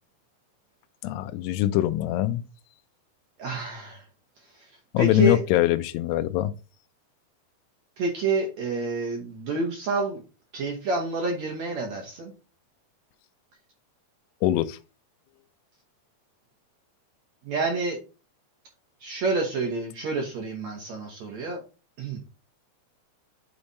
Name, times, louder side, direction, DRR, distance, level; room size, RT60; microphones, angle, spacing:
voice 1, 1.0-2.4 4.9-6.5 14.4-14.8, left 14 dB, 80° left, 2.6 m, -23 dB
voice 2, 3.4-4.0 5.0-5.4 8.0-10.2 10.5-12.3 17.5-18.0 19.0-21.6 22.0-22.2, right 3 dB, 65° right, 1.8 m, -28 dB
9.7 x 3.4 x 4.1 m
omnidirectional pair, 4.9 m